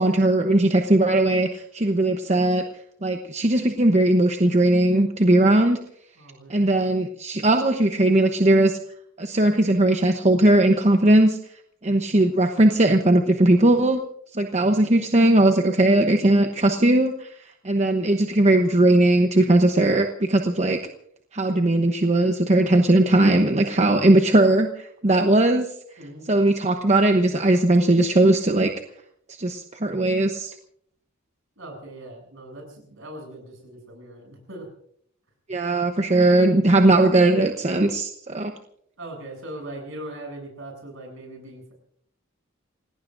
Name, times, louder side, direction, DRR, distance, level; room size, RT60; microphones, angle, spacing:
voice 1, 0.0-2.6 3.0-5.8 6.5-8.8 9.2-11.4 11.8-14.0 14.3-17.3 17.6-20.8 21.3-25.7 26.3-28.7 29.4-30.5 35.5-38.5, right 1 dB, 35° right, 4 dB, 1.0 m, -19 dB
voice 2, 6.2-6.6 11.8-12.1 14.5-14.9 26.0-26.3 31.6-34.7 39.0-41.7, right 1 dB, 70° right, 2 dB, 7.9 m, -40 dB
28.5 x 17.5 x 2.6 m, 0.66 s
head